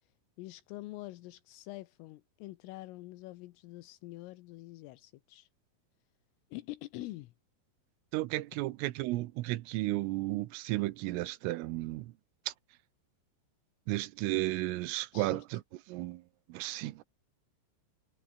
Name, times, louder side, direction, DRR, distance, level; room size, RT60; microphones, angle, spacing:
voice 1, 0.4-5.5 6.5-7.3 15.1-15.4, left 18 dB, 85° left, 3.6 m, -45 dB
voice 2, 8.1-12.1 12.5-12.6 13.9-15.6 15.9-16.2 16.5-17.0, right 18 dB, 90° right, 3.6 m, -33 dB
omnidirectional pair, 5.8 m